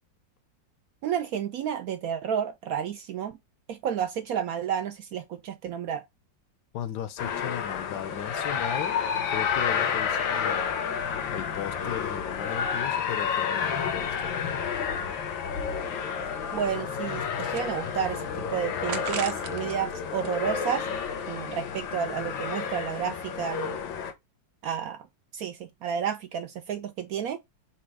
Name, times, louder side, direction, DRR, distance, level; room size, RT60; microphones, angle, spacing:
voice 1, 1.0-3.3 3.7-6.0 16.5-20.9 21.3-23.8 24.6-25.1 25.3-27.4, right 8 dB, 70° right, 0.8 m, -31 dB
voice 2, 6.7-9.0 9.3-10.9 11.3-14.7, left 11 dB, 75° left, 1.2 m, -36 dB
sound 1, 7.2-24.1, left 7 dB, 90° left, 1.6 m, -30 dB
sound 2, 17.3-18.2 18.9-19.8 20.1-21.3, right 9 dB, 90° right, 1.4 m, -39 dB
4.3 x 2.3 x 4.6 m
omnidirectional pair, 2.0 m